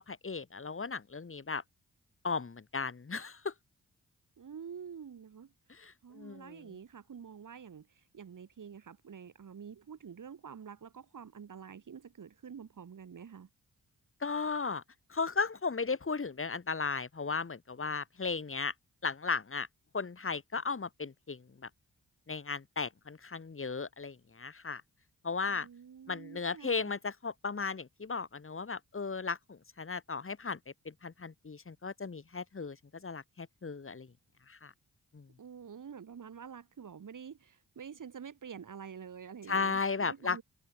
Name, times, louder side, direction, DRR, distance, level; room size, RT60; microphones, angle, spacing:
voice 1, 0.0-1.6 2.2-3.5 5.7-6.8 14.2-14.8 15.1-18.7 19.0-19.7 19.9-21.7 22.3-24.8 25.2-25.7 26.1-30.6 30.8-34.1 34.5-34.7 35.1-35.3 39.5-40.4, left 4 dB, 40° left, 3.0 m, -36 dB
voice 2, 4.4-5.5 6.0-7.9 8.1-13.5 25.5-26.9 35.4-40.4, right 7 dB, 70° right, 5.8 m, -48 dB
cardioid pair, 60°, 33 cm